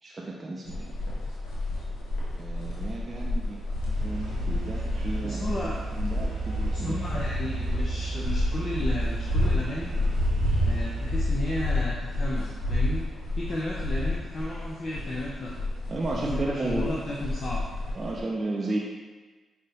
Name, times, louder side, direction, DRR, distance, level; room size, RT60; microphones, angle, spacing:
voice 1, 0.0-1.0 2.3-3.8 4.0-5.4 5.9-7.0 15.9-16.9 17.9-18.8, right 2 dB, 40° right, -3 dB, 0.4 m, -33 dB
sound 1, 0.7-18.2, left 1 dB, 90° left, 0.7 m, -30 dB
sound 2, 3.9-11.1, right 3 dB, 80° right, 0.6 m, -34 dB
voice 2, 5.2-5.8 6.7-9.9 10.6-13.0 13.4-15.5 16.1-17.6, left 1 dB, 50° left, -5 dB, 0.5 m, -34 dB
5.1 x 2.1 x 2.7 m, 1.4 s
hypercardioid pair, 45°, 0 cm